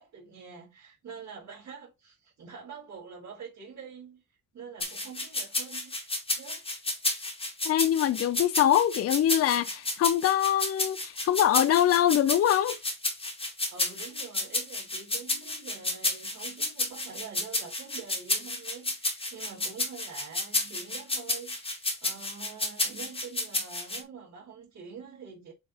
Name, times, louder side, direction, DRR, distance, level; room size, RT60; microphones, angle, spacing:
voice 1, 0.0-4.2 4.5-6.1 6.4-6.6 13.7-25.5, right 6 dB, 55° right, 4.2 m, -45 dB
sound 1, 4.8-24.0, left 2 dB, 15° left, 2.0 m, -31 dB
voice 2, 7.6-12.8, left 11 dB, 50° left, 0.5 m, -24 dB
7.8 x 4.3 x 2.8 m
wide cardioid pair, 180°, 32 cm